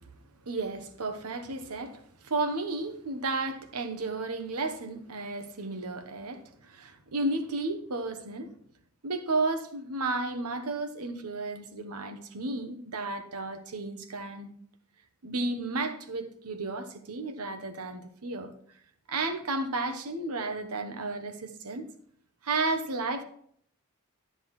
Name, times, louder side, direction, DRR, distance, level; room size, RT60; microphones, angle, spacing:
voice 1, 0.5-8.5 9.0-14.5 15.2-18.5 19.1-21.8 22.4-23.2, right 3 dB, 80° right, 9 dB, 1.0 m, -33 dB
12.5 x 7.8 x 3.1 m, 0.66 s
head